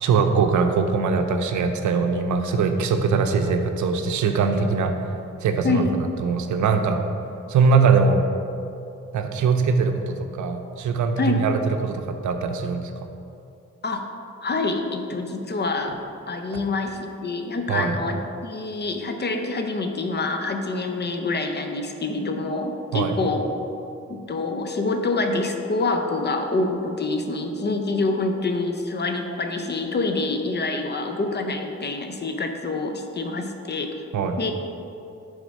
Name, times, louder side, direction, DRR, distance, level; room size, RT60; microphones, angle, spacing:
voice 1, 0.0-4.9 5.4-5.8 6.2-7.0 7.5-8.2 9.1-12.9 17.7-17.9 22.9-23.2 34.1-34.4, right 5 dB, 80° right, 6 dB, 0.6 m, -21 dB
voice 2, 5.6-6.0 11.2-11.5 13.8-14.1 14.4-23.5 24.1-34.0 34.4-34.5, left 3 dB, 35° left, 5 dB, 0.6 m, -26 dB
6.2 x 3.7 x 5.3 m, 2.7 s
cardioid pair, 80°, 29 cm